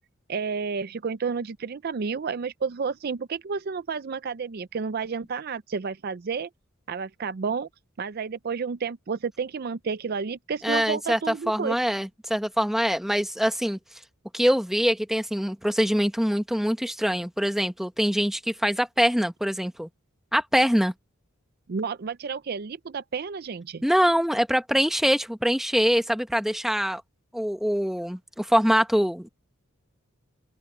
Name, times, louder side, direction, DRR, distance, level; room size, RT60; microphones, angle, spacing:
voice 1, 0.3-6.5 6.9-7.7 8.0-11.8 21.7-23.8, right 5 dB, 50° right, 0.5 m, -31 dB
voice 2, 10.6-13.8 14.3-19.9 20.3-20.9 23.8-27.0 27.3-29.3, equal, ahead, 1.1 m, -24 dB
open air
head